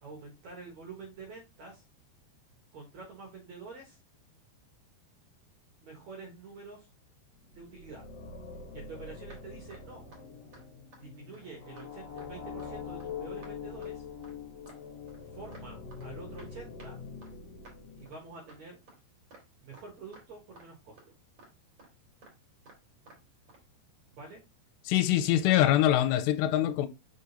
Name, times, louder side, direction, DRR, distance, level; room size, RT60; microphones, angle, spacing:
voice 1, 0.0-1.8 2.7-4.0 5.8-6.9 7.6-8.1 8.7-10.1 11.0-14.1 15.2-17.0 18.0-18.8 19.6-21.0 24.1-24.4 25.2-25.8, right 4 dB, 60° right, 2.1 m, -47 dB
sound 1, 7.4-18.6, left 5 dB, 65° left, 2.6 m, -44 dB
sound 2, 8.9-9.0 9.3-9.4 9.7-9.8 10.1-10.2 10.5-10.6 10.9-11.0 11.3-11.5 11.8-11.9 12.2-12.3 12.6-12.7 13.0-13.1 13.4-13.5 13.8-13.9 14.2-14.3 14.7-14.8 15.1-15.7 15.9-16.1 16.4-16.5 16.8-16.9 17.2-17.3 17.6-17.8 18.1-18.2 18.5-18.6 18.9-19.0 19.3-19.4 19.7-19.9 20.1-20.3 20.6-20.7 21.0-21.1 21.4-21.5 21.8-21.9 22.2-22.4 22.7-22.8 23.1-23.2 23.5-23.6, right 2 dB, 35° right, 2.5 m, -54 dB
voice 2, 24.9-26.9, left 12 dB, 85° left, 2.8 m, -24 dB
6.1 x 3.8 x 4.0 m
omnidirectional pair, 5.0 m